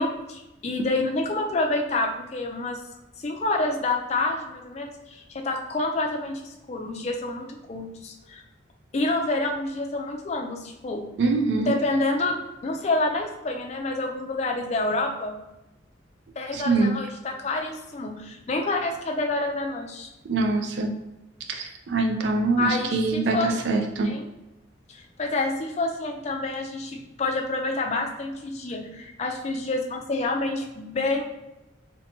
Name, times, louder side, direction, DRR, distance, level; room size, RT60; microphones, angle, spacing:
voice 1, 0.0-2.8 3.2-8.4 8.9-11.0 11.6-15.4 16.4-20.1 22.6-23.8 24.0-24.2 24.9-31.2, left 2 dB, 35° left, 2 dB, 0.4 m, -28 dB
voice 2, 11.2-11.7 16.5-16.9 20.2-20.9 21.5-24.1, right 3 dB, 65° right, 3 dB, 0.4 m, -24 dB
2.8 x 2.1 x 2.6 m, 1.0 s
head